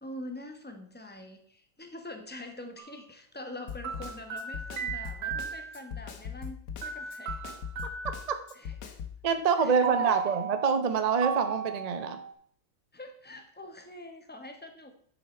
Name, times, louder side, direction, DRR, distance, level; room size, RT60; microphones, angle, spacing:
voice 1, 0.0-7.6 8.5-9.0 9.6-10.4 12.9-14.9, left 1 dB, 10° left, 5 dB, 0.6 m, -44 dB
sound 1, 2.8-3.0 3.8-5.8 6.8-8.4 9.8-12.3, right 7 dB, 85° right, 1.8 m, -36 dB
Snare drum, 3.7-9.2, left 7 dB, 65° left, 1.5 m, -40 dB
voice 2, 8.0-8.4 9.2-12.2, right 6 dB, 70° right, 9 dB, 0.3 m, -26 dB
8.5 x 7.1 x 4.4 m, 0.62 s
omnidirectional pair, 2.1 m